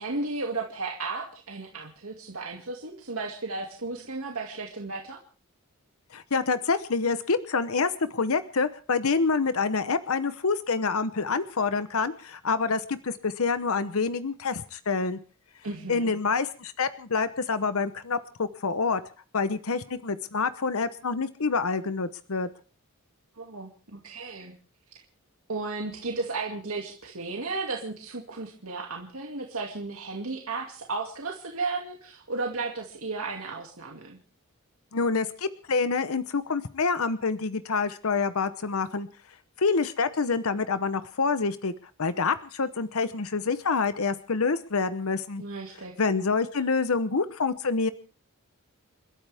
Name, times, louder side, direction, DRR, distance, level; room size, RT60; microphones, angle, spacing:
voice 1, 0.0-5.2 15.6-16.1 23.4-24.5 25.5-34.2 45.4-45.9, right 3 dB, 80° right, 1 dB, 2.4 m, -34 dB
voice 2, 6.1-15.2 15.9-19.0 19.3-22.5 34.9-39.1 39.6-41.7 42.0-45.4 46.0-47.9, left 4 dB, 85° left, 12 dB, 0.9 m, -27 dB
30.0 x 13.0 x 3.5 m, 0.38 s
head